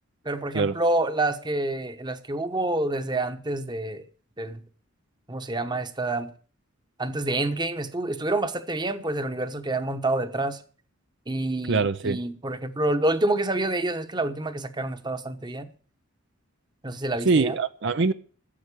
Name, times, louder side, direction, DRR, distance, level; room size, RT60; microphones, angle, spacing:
voice 1, 0.2-4.0 4.4-4.6 5.3-6.3 7.0-10.6 11.3-15.7 16.8-17.6, right 2 dB, 20° right, 1.1 m, -28 dB
voice 2, 11.7-12.2 17.3-18.1, right 4 dB, 60° right, 0.6 m, -23 dB
13.5 x 7.9 x 8.4 m
head